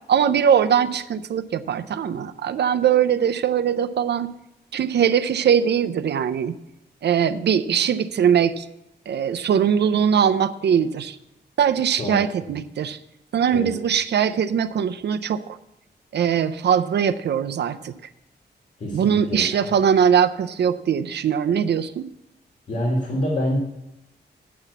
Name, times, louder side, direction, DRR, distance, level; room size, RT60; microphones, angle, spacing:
voice 1, 0.1-4.3 4.7-6.6 7.0-8.7 9.1-11.2 11.6-13.0 13.3-15.6 16.1-17.9 18.9-22.1, right 8 dB, 75° right, 10 dB, 0.5 m, -21 dB
voice 2, 18.8-19.7 22.7-23.6, equal, 45° left, -2 dB, 1.7 m, -26 dB
8.5 x 5.8 x 7.9 m, 0.87 s
wide cardioid pair, 170°, 18 cm